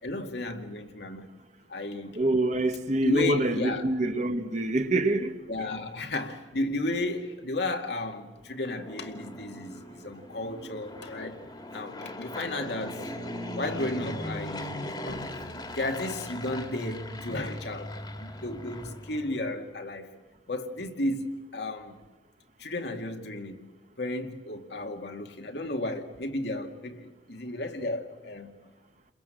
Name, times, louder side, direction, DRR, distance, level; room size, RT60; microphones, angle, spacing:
voice 1, 0.0-1.3 1.7-2.2 3.0-3.9 5.5-11.4 11.7-13.1 13.6-14.8 15.1-15.3 15.7-20.1 20.5-22.0 22.6-23.7 24.0-28.5, left 2 dB, 65° left, 2.2 m, -33 dB
voice 2, 2.1-5.7, right 1 dB, 40° right, 1.5 m, -26 dB
Fixed-wing aircraft airplane, 8.5-19.6, left 1 dB, 25° left, 2.1 m, -39 dB
30.0 x 22.0 x 7.8 m
head